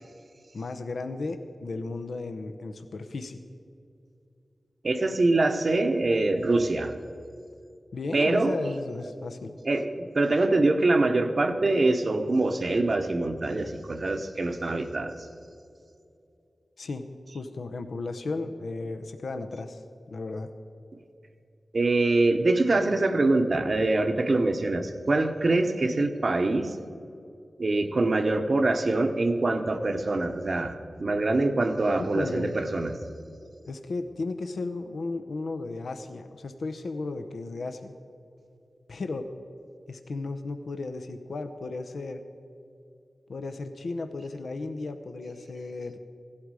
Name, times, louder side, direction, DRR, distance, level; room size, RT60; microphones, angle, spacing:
voice 1, 0.5-3.4 7.9-9.5 16.8-17.0 17.3-19.8 20.1-20.5 32.1-32.5 33.6-37.9 38.9-39.3 39.9-42.3 43.3-46.0, left 3 dB, 80° left, 7 dB, 0.7 m, -34 dB
voice 2, 4.8-7.0 8.1-8.6 9.6-15.1 21.7-26.7 27.6-33.0, right 2 dB, 55° right, 7 dB, 1.0 m, -24 dB
16.0 x 12.0 x 4.8 m, 2.6 s
wide cardioid pair, 60°, 0 cm